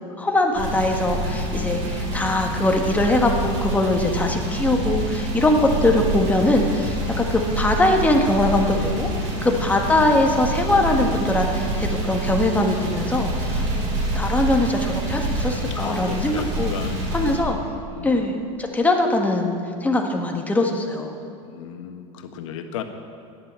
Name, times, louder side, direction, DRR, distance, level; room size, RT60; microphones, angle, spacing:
voice 1, 0.2-9.1 9.4-13.6 14.1-16.7 17.1-17.6 18.0-19.5 19.8-21.2, left 2 dB, 10° left, 2 dB, 1.5 m, -21 dB
sound 1, 0.6-17.4, right 1 dB, 55° right, 4.6 m, -26 dB
voice 2, 9.3-9.8 13.6-14.2 15.7-17.1 17.9-18.2 21.4-22.8, left 8 dB, 85° left, 6 dB, 1.5 m, -36 dB
13.0 x 11.0 x 7.5 m, 2.5 s
supercardioid pair, 145°, 16 cm